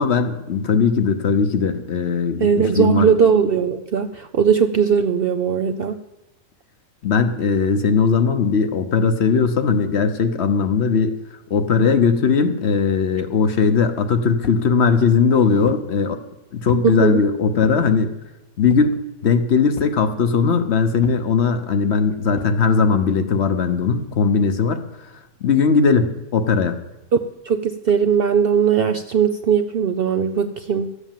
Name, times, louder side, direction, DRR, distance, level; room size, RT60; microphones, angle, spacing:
voice 1, 0.0-3.1 7.0-11.1 11.5-16.2 16.5-18.1 18.6-24.8 25.4-26.8, left 5 dB, 55° left, 9 dB, 1.0 m, -19 dB
voice 2, 2.4-6.0 16.8-17.2 27.1-30.9, right 7 dB, 60° right, 9 dB, 0.6 m, -19 dB
sound 1, 14.4-14.7 15.3-15.9 16.7-17.0 17.6-17.9 18.7-19.0 19.8-20.0 21.0-21.3 22.4-22.6, left 8 dB, 80° left, 1.1 m, -35 dB
13.0 x 8.2 x 7.3 m, 0.94 s
omnidirectional pair, 1.5 m